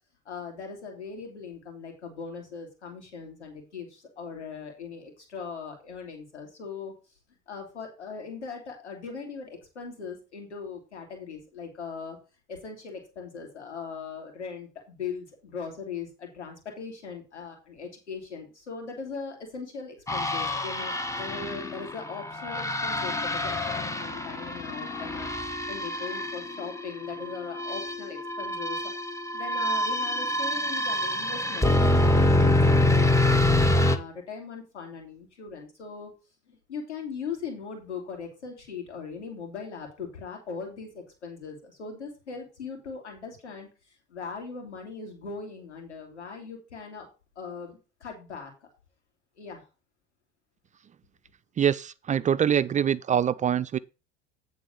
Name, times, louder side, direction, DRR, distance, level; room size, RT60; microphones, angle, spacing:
voice 1, 0.2-6.9 7.5-12.2 12.5-28.8 29.3-36.1 36.5-43.7 44.1-47.1 47.4-48.7 49.4-49.6, left 5 dB, 90° left, 2.6 m, -39 dB
sound 1, 20.1-34.0, left 1 dB, 10° left, 0.9 m, -26 dB
voice 2, 51.6-53.8, right 9 dB, 25° right, 0.3 m, -24 dB
9.2 x 3.9 x 6.9 m
hypercardioid pair, 70°, 34 cm